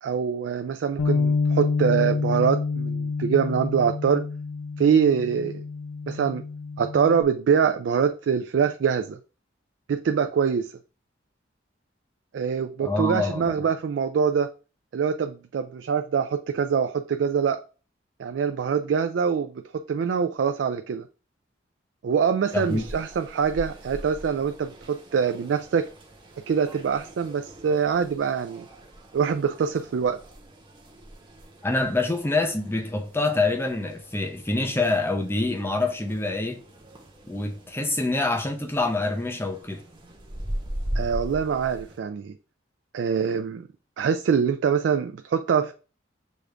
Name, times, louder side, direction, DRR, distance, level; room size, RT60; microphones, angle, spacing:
voice 1, 0.0-4.2 4.8-5.6 6.1-6.4 6.8-9.2 9.9-10.7 12.3-14.5 14.9-17.6 18.2-21.0 22.0-25.9 26.5-28.7 29.1-30.2 40.9-42.3 42.9-43.7 44.0-45.7, right 6 dB, 70° right, 0.3 m, -24 dB
Bass guitar, 1.0-7.2, left 4 dB, 85° left, 0.4 m, -28 dB
voice 2, 12.8-13.5 22.5-22.8 31.6-36.6 37.3-39.8, left 2 dB, 15° left, 0.6 m, -26 dB
sound 1, 22.4-42.0, equal, 25° right, 0.9 m, -40 dB
6.3 x 2.5 x 3.3 m
head